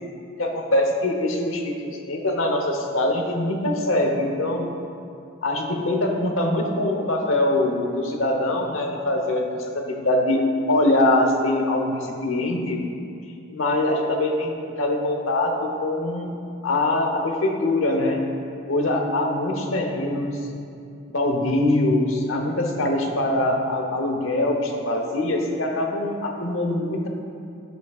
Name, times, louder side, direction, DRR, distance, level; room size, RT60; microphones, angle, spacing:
voice 1, 0.4-4.7 5.4-10.4 10.7-12.8 13.5-16.4 16.6-18.2 18.7-20.4 21.1-27.1, left 1 dB, 85° left, 2 dB, 1.0 m, -23 dB
11.0 x 8.0 x 2.4 m, 2.5 s
head